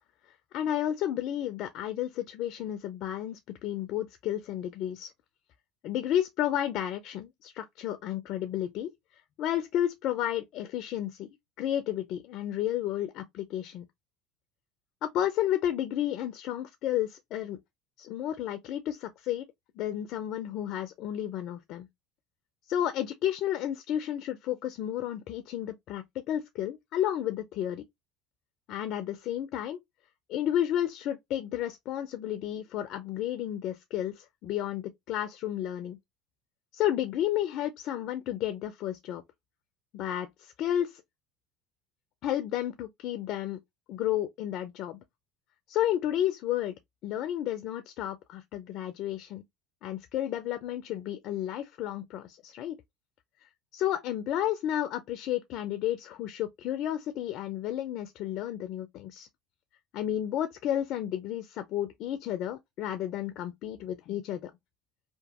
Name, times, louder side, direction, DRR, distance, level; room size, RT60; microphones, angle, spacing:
voice 1, 0.5-5.1 5.8-8.9 9.4-11.3 11.6-13.8 15.0-17.6 18.0-19.5 19.8-21.9 22.7-27.8 28.7-29.8 30.3-36.0 36.7-39.2 39.9-41.0 42.2-43.6 43.9-45.0 45.7-46.7 47.0-49.4 49.8-52.8 53.7-59.3 59.9-64.5, left 11 dB, 55° left, 0.4 m, -32 dB
2.9 x 2.1 x 2.8 m
hypercardioid pair, 80°, 0 cm